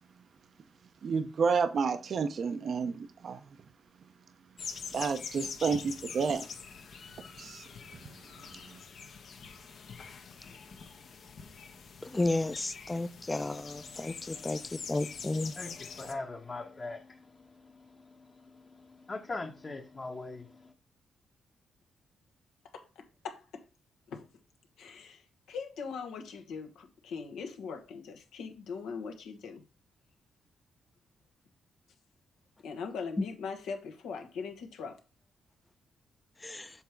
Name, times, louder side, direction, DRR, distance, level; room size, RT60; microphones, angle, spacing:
voice 1, 1.0-3.4 4.9-6.4 7.4-7.6 8.0-8.8, right 5 dB, 60° right, 0.6 m, -31 dB
sound 1, 4.6-16.1, left 6 dB, 65° left, 0.9 m, -45 dB
voice 2, 12.0-15.5 36.4-36.7, left 2 dB, 20° left, 0.6 m, -33 dB
voice 3, 13.4-15.0 15.4-20.7, left 3 dB, 35° left, 1.0 m, -43 dB
voice 4, 22.7-23.6 24.1-24.3 24.8-29.6 32.6-35.0, left 5 dB, 85° left, 1.1 m, -41 dB
7.2 x 3.6 x 4.5 m
cardioid pair, 80°, 0 cm